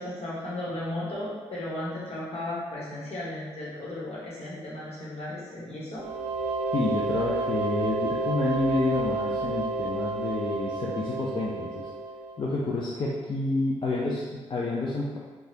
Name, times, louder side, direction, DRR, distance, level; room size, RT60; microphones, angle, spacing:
voice 1, 0.0-6.0, left 1 dB, 65° left, -7 dB, 1.2 m, -35 dB
sound 1, 6.0-12.6, right 2 dB, 65° right, 0.5 m, -30 dB
voice 2, 6.7-11.9 12.4-15.2, left 2 dB, 45° left, -5 dB, 0.5 m, -29 dB
3.1 x 2.3 x 2.7 m, 1.4 s
supercardioid pair, 55°, 12 cm